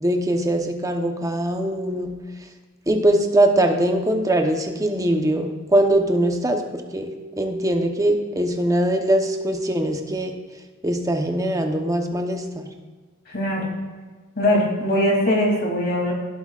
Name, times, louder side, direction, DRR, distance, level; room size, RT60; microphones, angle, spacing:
voice 1, 0.0-2.1 2.9-7.1 7.4-10.3 10.8-12.7, right 1 dB, 15° right, 4 dB, 0.9 m, -21 dB
voice 2, 13.3-13.6 14.4-16.1, left 1 dB, 45° left, -1 dB, 2.8 m, -21 dB
16.0 x 7.9 x 2.5 m, 1.4 s
head